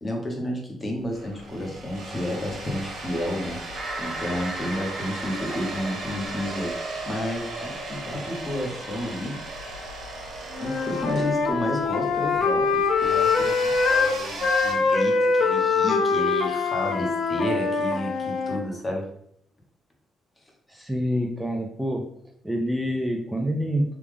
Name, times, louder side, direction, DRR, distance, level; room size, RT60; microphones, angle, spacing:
voice 1, 0.0-3.6 4.0-9.4 9.6-9.7 10.6-12.6 13.0-19.0, left 1 dB, 25° left, 1 dB, 1.0 m, -31 dB
sound 1, 1.0-14.7, right 2 dB, 70° right, 1.2 m, -36 dB
sound 2, 3.8-9.5, right 2 dB, 40° right, 1.2 m, -39 dB
Wind instrument woodwind instrument, 10.5-14.1 14.4-18.6, left 4 dB, 60° left, 0.6 m, -23 dB
voice 2, 20.7-22.0 22.4-24.0, equal, 5° right, 1 dB, 0.4 m, -27 dB
3.4 x 2.4 x 3.5 m, 0.70 s
cardioid pair, 90°, 0 cm